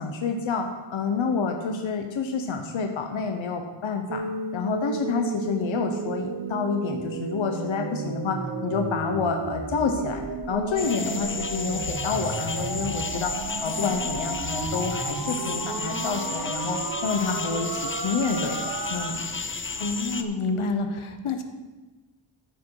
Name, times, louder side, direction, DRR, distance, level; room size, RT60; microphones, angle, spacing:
voice 1, 0.0-4.2 4.5-18.6 18.9-19.2, left 5 dB, 70° left, 4 dB, 1.2 m, -28 dB
sound 1, 4.1-19.1, right 4 dB, 50° right, 1.1 m, -33 dB
sound 2, 10.8-20.2, left 4 dB, 25° left, 0.6 m, -33 dB
voice 2, 19.8-21.4, left 3 dB, 85° left, 6 dB, 1.3 m, -28 dB
13.0 x 7.5 x 4.8 m, 1.2 s
wide cardioid pair, 155°, 48 cm